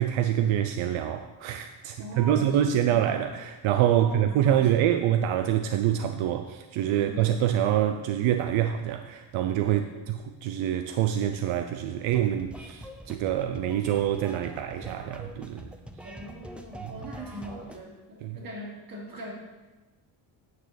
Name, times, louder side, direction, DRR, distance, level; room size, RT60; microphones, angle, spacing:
voice 1, 0.0-9.8 10.1-15.7 16.8-16.9 18.2-18.4, right 11 dB, 85° right, 8 dB, 0.6 m, -26 dB
voice 2, 2.0-3.0 3.8-4.8 6.9-7.3 9.6-10.0 16.0-19.3, equal, 45° right, -4 dB, 3.2 m, -41 dB
sound 1, 12.1-17.8, right 1 dB, ahead, 0.6 m, -44 dB
9.5 x 4.7 x 7.6 m, 1.2 s
cardioid pair, 145°, 46 cm